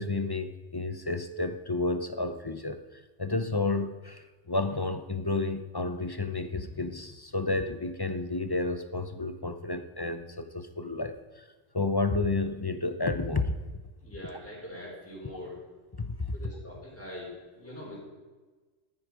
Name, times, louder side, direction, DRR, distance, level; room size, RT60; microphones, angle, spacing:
voice 1, 0.0-11.4 11.7-13.6 16.0-16.2, left 3 dB, 25° left, 10 dB, 0.6 m, -31 dB
voice 2, 14.0-15.6 16.3-18.0, left 1 dB, 10° left, -7 dB, 4.4 m, -43 dB
14.0 x 9.4 x 4.9 m, 1.3 s
omnidirectional pair, 1.1 m